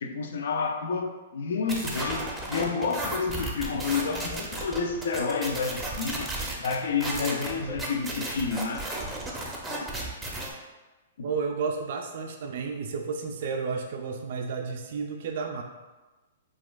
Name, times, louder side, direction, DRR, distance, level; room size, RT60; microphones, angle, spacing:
voice 1, 0.0-6.3 6.6-8.9 11.2-11.3, left 5 dB, 75° left, 0.4 m, -30 dB
sound 1, 1.7-10.5, right 2 dB, 10° right, 0.6 m, -34 dB
voice 2, 11.2-15.6, right 5 dB, 60° right, 0.3 m, -32 dB
4.0 x 2.4 x 2.3 m
hypercardioid pair, 130°, 0 cm